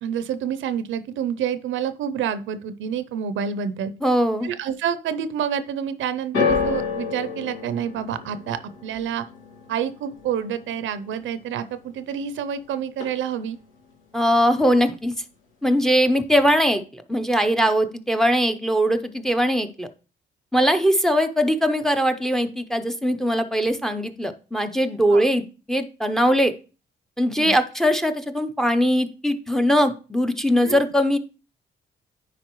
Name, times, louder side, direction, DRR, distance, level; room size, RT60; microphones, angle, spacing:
voice 1, 0.0-3.9 4.4-9.3 9.7-13.6 25.1-25.3 27.4-27.5 30.6-30.8, right 8 dB, 75° right, 13 dB, 0.6 m, -28 dB
voice 2, 4.0-4.5 14.1-15.1 15.6-19.9 20.5-26.5 27.2-31.2, equal, ahead, 8 dB, 0.6 m, -21 dB
sound 1, 6.3-12.6 12.9-13.6 14.3-14.4, left 5 dB, 90° left, 2.1 m, -30 dB
9.8 x 4.2 x 3.0 m, 0.34 s
cardioid pair, 90°, 20 cm